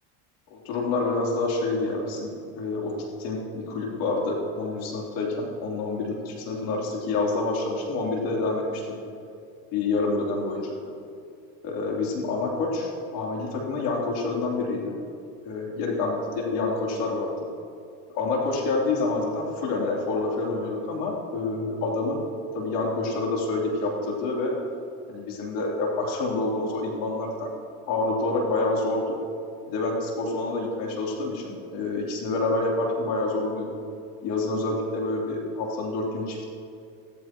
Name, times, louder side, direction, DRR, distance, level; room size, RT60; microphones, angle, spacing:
voice 1, 0.5-9.0 9.7-10.9 11.6-15.0 15.4-17.3 18.1-22.2 22.5-24.6 25.1-27.5 27.9-29.2 29.7-33.7 34.2-36.4, left 3 dB, 65° left, -2 dB, 3.5 m, -27 dB
15.5 x 14.0 x 3.1 m, 2.5 s
supercardioid pair, 120°, 36 cm